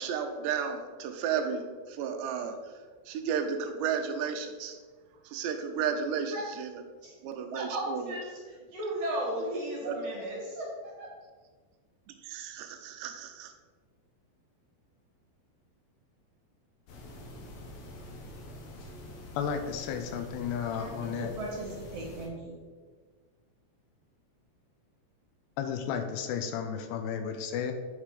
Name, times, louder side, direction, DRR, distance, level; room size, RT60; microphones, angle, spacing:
voice 1, 0.0-2.6 3.1-4.8 5.3-6.8 7.2-8.2 9.9-10.0 12.2-13.5, right 7 dB, 85° right, 6 dB, 2.9 m, -33 dB
voice 2, 7.0-11.1 20.7-22.6, right 1 dB, 50° right, -3 dB, 2.1 m, -36 dB
sound 1, 16.9-22.3, left 1 dB, 65° left, 2.7 m, -46 dB
voice 3, 19.4-21.3 25.6-27.7, left 7 dB, 80° left, 7 dB, 2.8 m, -33 dB
9.1 x 5.0 x 4.9 m, 1.5 s
omnidirectional pair, 5.0 m